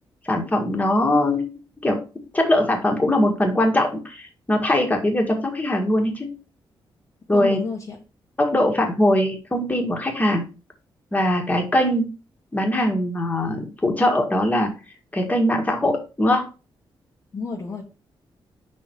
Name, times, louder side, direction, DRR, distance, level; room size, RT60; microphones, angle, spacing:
voice 1, 0.3-1.5 1.8-2.0 2.3-6.3 7.3-7.6 8.4-10.4 11.1-12.1 12.5-14.7 15.1-16.5, left 1 dB, 15° left, 1 dB, 1.8 m, -21 dB
voice 2, 7.3-8.0 17.3-17.8, left 4 dB, 35° left, -2 dB, 1.3 m, -30 dB
5.7 x 4.2 x 4.5 m, 0.31 s
cardioid pair, 120°, 9 cm